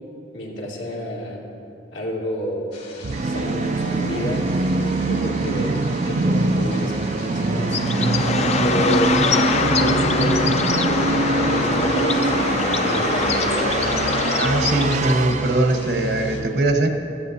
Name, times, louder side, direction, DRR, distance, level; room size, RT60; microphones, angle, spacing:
voice 1, 0.3-1.4 1.9-2.7 3.2-4.5 5.0-7.9 8.6-9.2 9.7-13.8, equal, 85° left, -4 dB, 2.5 m, -29 dB
sound 1, 2.7-16.4, left 3 dB, 60° left, 2.1 m, -41 dB
Musical instrument, 3.0-16.7, right 3 dB, 40° right, 0.4 m, -23 dB
Bird, 7.6-15.3, left 4 dB, 40° left, 0.5 m, -23 dB
voice 2, 14.4-16.9, right 2 dB, 60° right, 4 dB, 1.1 m, -21 dB
15.5 x 14.0 x 2.8 m, 2.7 s
head